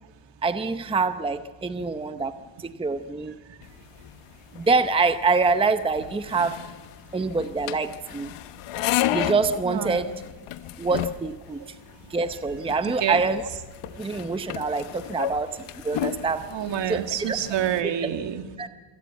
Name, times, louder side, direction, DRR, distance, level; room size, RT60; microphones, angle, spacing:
voice 1, 0.4-2.3 2.6-3.3 4.5-6.6 7.1-8.3 9.1-10.1 10.8-11.6 12.1-13.5 14.0-15.5 15.8-16.4 16.9-17.4 17.8-17.9 18.6-18.7, right 4 dB, 10° right, 10 dB, 0.8 m, -25 dB
sound 1, 3.6-17.8, left 13 dB, 85° left, 1.1 m, -34 dB
voice 2, 9.6-10.1 12.8-13.2 16.5-18.5, right 10 dB, 60° right, 7 dB, 2.1 m, -28 dB
27.0 x 18.0 x 8.3 m, 1.4 s
cardioid pair, 145°, 50 cm